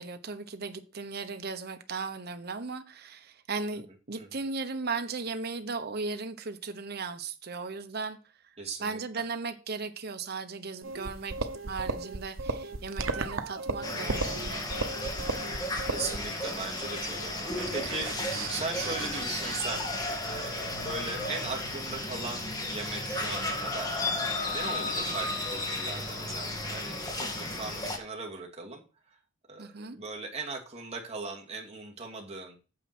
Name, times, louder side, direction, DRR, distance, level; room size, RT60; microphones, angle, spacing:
voice 1, 0.0-8.2 8.8-11.4 11.7-14.6 29.6-30.0, right 4 dB, 55° right, 1.1 m, -36 dB
voice 2, 8.6-9.2 13.7-14.1 14.4-14.7 15.9-19.9 20.2-24.0 24.5-29.2 29.5-29.7 29.9-32.6, right 3 dB, 35° right, 2.5 m, -39 dB
sound 1, 10.8-20.2, right 3 dB, 75° right, 1.0 m, -36 dB
sound 2, 13.8-28.0, left 2 dB, 20° left, 2.4 m, -34 dB
9.0 x 7.3 x 4.4 m
head